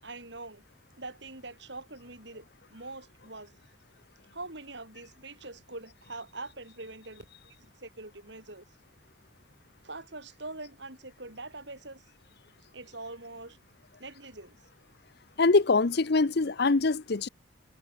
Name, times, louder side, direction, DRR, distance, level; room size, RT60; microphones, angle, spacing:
voice 1, 0.0-0.6 1.0-2.4 2.7-3.5 4.3-8.6 9.8-12.0 12.7-13.6 14.0-14.6, right 2 dB, 60° right, 6.5 m, -43 dB
voice 2, 15.4-17.3, left 3 dB, 55° left, 0.7 m, -23 dB
head